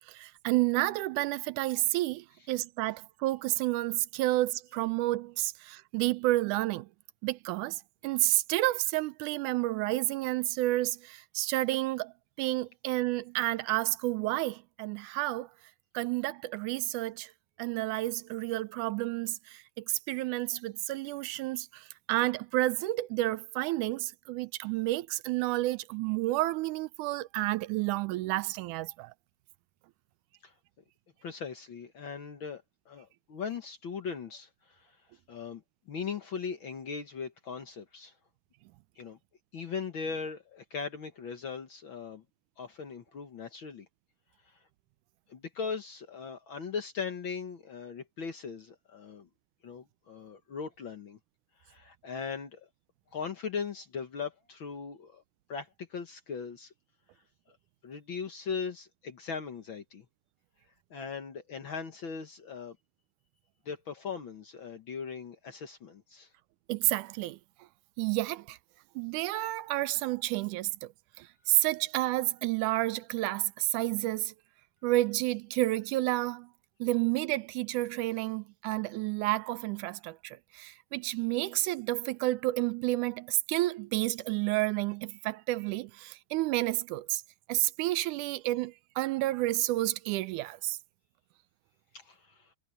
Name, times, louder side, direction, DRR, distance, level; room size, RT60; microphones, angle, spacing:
voice 1, 0.1-6.9 7.2-12.1 12.4-15.5 15.9-17.3 17.6-29.1 66.7-67.4 68.0-68.6 69.0-70.7 71.2-74.3 74.8-76.5 76.8-87.2 87.5-90.8, right 18 dB, 85° right, 2.1 m, -30 dB
voice 2, 31.2-35.0 35.3-38.1 39.0-39.2 39.5-42.2 42.6-43.9 44.4-44.6 45.3-49.3 49.6-51.2 51.6-52.7 53.1-55.2 55.5-56.7 57.5-57.6 57.8-60.0 60.9-62.8 63.6-66.3 91.9-92.5, left 6 dB, 50° left, 1.6 m, -39 dB
omnidirectional pair, 3.6 m